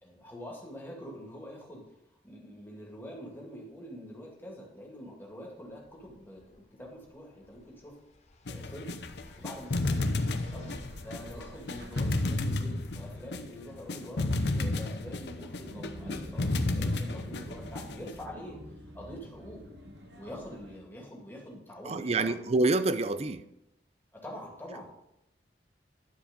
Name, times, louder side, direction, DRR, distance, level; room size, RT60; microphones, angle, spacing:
voice 1, 0.0-1.8 2.2-8.0 8.5-9.0 9.4-18.6 18.9-19.6 20.2-22.4 24.1-24.9, equal, 10° left, 2.2 m, -45 dB
sound 1, 5.6-14.0, left 1 dB, 40° left, 0.9 m, -53 dB
sound 2, 8.5-18.2, left 2 dB, 70° left, 0.7 m, -32 dB
sound 3, 9.7-20.8, equal, 80° right, 1.4 m, -49 dB
voice 2, 21.9-23.4, right 2 dB, 35° right, 0.5 m, -27 dB
11.0 x 5.0 x 5.2 m
head